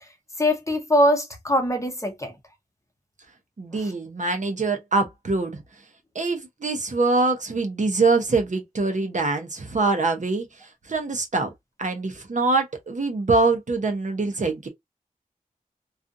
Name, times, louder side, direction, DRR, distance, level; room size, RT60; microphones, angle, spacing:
voice 1, 0.4-2.3 3.8-3.9, left 1 dB, 20° left, 0.7 m, -22 dB
voice 2, 3.6-5.6 6.1-10.5 10.9-11.5 11.8-14.7, right 3 dB, 55° right, 0.7 m, -24 dB
2.4 x 2.4 x 2.5 m
wide cardioid pair, 75°, 15 cm